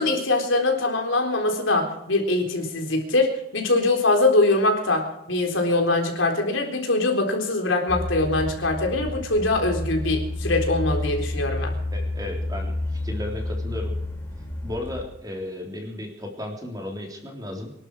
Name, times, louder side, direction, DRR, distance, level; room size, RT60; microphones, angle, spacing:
voice 1, 0.0-11.8, left 2 dB, 75° left, 2 dB, 3.9 m, -23 dB
sound 1, 7.9-15.0, left 2 dB, 10° left, 3.7 m, -30 dB
voice 2, 11.9-12.7 13.0-13.9 14.6-17.7, left 1 dB, 20° right, 1 dB, 3.6 m, -34 dB
25.0 x 12.0 x 4.9 m, 0.83 s
head